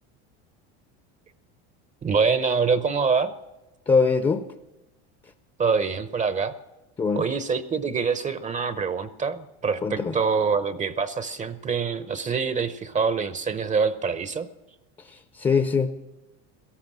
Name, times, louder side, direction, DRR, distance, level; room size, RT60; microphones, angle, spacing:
voice 1, 2.0-3.3 5.6-6.5 7.2-14.5, right 5 dB, 20° right, 0.7 m, -25 dB
voice 2, 3.9-4.5 7.0-7.3 9.8-10.2 15.0-15.9, left 5 dB, 15° left, 0.7 m, -22 dB
17.5 x 13.5 x 6.2 m
supercardioid pair, 120°, 33 cm